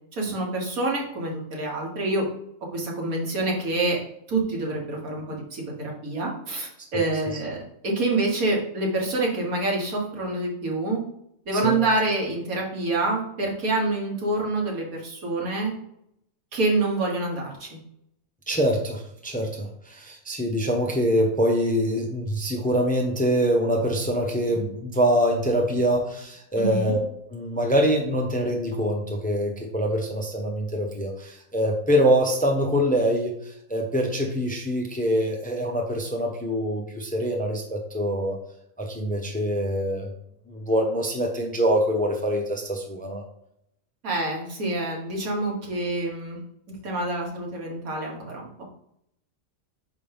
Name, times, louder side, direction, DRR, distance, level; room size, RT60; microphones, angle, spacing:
voice 1, 0.1-2.3 2.7-4.0 4.3-11.0 11.5-15.7 16.5-17.8 26.6-26.9 44.0-46.4 46.8-48.6, right 2 dB, 90° right, -1 dB, 2.0 m, -27 dB
voice 2, 18.5-38.4 38.8-40.1 40.5-43.2, equal, 10° left, 1 dB, 0.7 m, -24 dB
5.8 x 5.2 x 3.5 m, 0.76 s
omnidirectional pair, 1.4 m